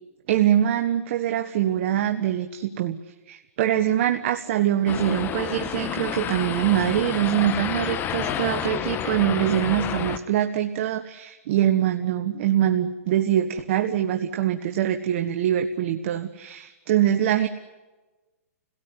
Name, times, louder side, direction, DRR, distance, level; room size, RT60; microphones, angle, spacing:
voice 1, 0.3-3.0 3.3-17.5, right 11 dB, 55° right, 7 dB, 1.3 m, -23 dB
sound 1, 4.9-10.2, left 9 dB, 25° left, 1.4 m, -30 dB
28.0 x 17.5 x 9.9 m, 1.2 s
hypercardioid pair, 135°, 8 cm